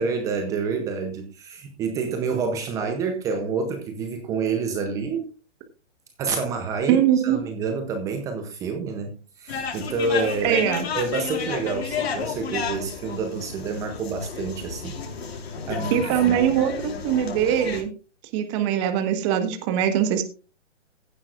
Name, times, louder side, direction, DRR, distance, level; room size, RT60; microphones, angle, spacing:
voice 1, 0.0-5.3 6.2-10.6 10.9-15.0 15.7-16.4, right 4 dB, 10° right, 6 dB, 0.6 m, -28 dB
voice 2, 6.9-7.4 10.4-10.8 15.9-17.9 18.3-20.2, right 10 dB, 25° right, 7 dB, 1.4 m, -22 dB
sound 1, 9.5-17.8, left 6 dB, 55° left, 4.3 m, -32 dB
15.5 x 11.0 x 2.5 m, 0.33 s
hypercardioid pair, 155°, 37 cm